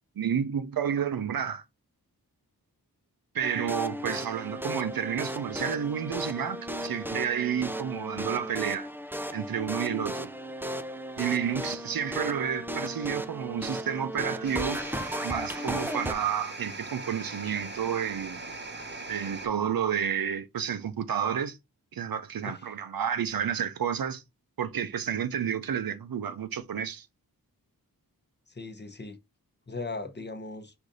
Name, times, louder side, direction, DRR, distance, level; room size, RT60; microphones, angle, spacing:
voice 1, 0.2-1.6 3.3-8.9 9.3-10.3 11.2-14.8 15.2-18.4 19.1-21.6 21.9-24.2 24.6-27.1, right 8 dB, 70° right, 0.6 m, -30 dB
sound 1, 3.4-16.1, equal, 5° right, 0.4 m, -35 dB
sound 2, 14.4-19.5, right 3 dB, 30° right, 0.9 m, -40 dB
voice 2, 22.4-22.7 28.5-29.2 29.7-30.7, left 3 dB, 30° left, 0.8 m, -38 dB
4.9 x 2.6 x 3.9 m
wide cardioid pair, 55°, 37 cm